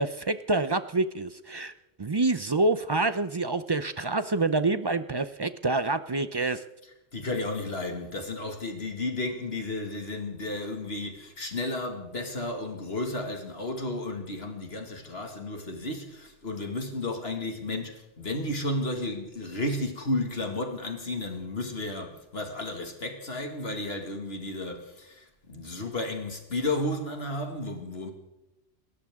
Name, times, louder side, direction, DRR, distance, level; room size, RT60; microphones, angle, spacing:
voice 1, 0.0-1.7 2.0-6.6, right 2 dB, 35° right, 0.4 m, -27 dB
voice 2, 7.1-28.1, left 2 dB, 60° left, 2.3 m, -33 dB
28.0 x 13.5 x 3.7 m
omnidirectional pair, 1.2 m